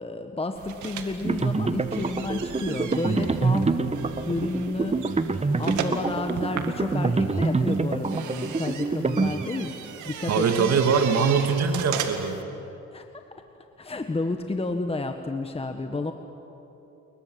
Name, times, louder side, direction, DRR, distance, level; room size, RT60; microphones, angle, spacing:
voice 1, 0.0-3.8 4.1-9.7 10.0-10.8 12.9-13.0 13.8-16.1, left 2 dB, 20° left, 6 dB, 1.4 m, -31 dB
sound 1, 0.6-12.4, right 8 dB, 80° right, 2.1 m, -37 dB
sound 2, 1.2-9.8, right 3 dB, 20° right, 1.4 m, -26 dB
voice 2, 10.3-12.4, right 6 dB, 60° right, 6 dB, 2.1 m, -22 dB
29.5 x 22.0 x 7.8 m, 3.0 s
cardioid pair, 90°, 30 cm